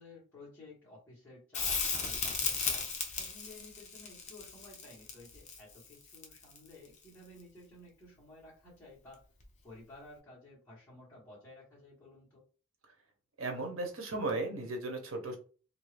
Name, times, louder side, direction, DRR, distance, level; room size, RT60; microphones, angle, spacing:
voice 1, 0.0-9.2 9.6-12.4, left 2 dB, 10° left, -11 dB, 1.5 m, -54 dB
Crackle, 1.5-6.7 9.4-9.5, left 5 dB, 35° left, 0.7 m, -35 dB
voice 2, 13.4-15.4, right 2 dB, 85° right, 4 dB, 0.9 m, -36 dB
2.7 x 2.6 x 3.3 m, 0.38 s
head